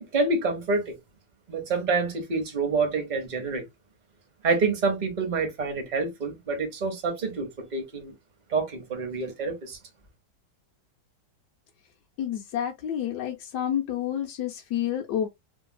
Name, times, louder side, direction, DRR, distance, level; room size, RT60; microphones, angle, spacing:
voice 1, 0.1-0.9 1.5-3.6 4.4-8.1 8.5-9.8, right 4 dB, 35° right, 0.7 m, -27 dB
voice 2, 12.2-15.3, left 10 dB, 70° left, 1.1 m, -29 dB
3.1 x 2.7 x 2.2 m
omnidirectional pair, 2.0 m